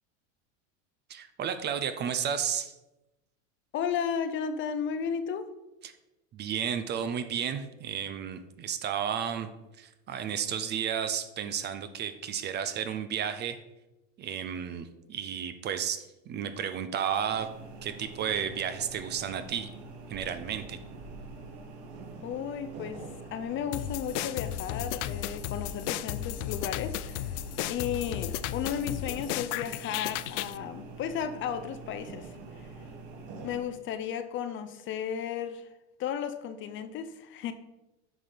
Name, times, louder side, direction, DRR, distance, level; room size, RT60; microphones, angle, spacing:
voice 1, 1.1-2.7 5.8-5.9 6.3-9.5 9.8-13.6 14.2-17.5 17.8-19.7 20.1-20.8, right 8 dB, 30° right, 0.6 m, -32 dB
voice 2, 3.7-5.5 22.2-23.0 23.3-27.3 27.7-32.7 33.4-35.7 36.0-37.5, left 8 dB, 35° left, 0.6 m, -34 dB
sound 1, 17.3-33.6, right 3 dB, 60° right, 2.6 m, -46 dB
sound 2, 23.7-30.6, left 14 dB, 75° left, 0.6 m, -34 dB
9.4 x 5.9 x 5.1 m
supercardioid pair, 135°, 37 cm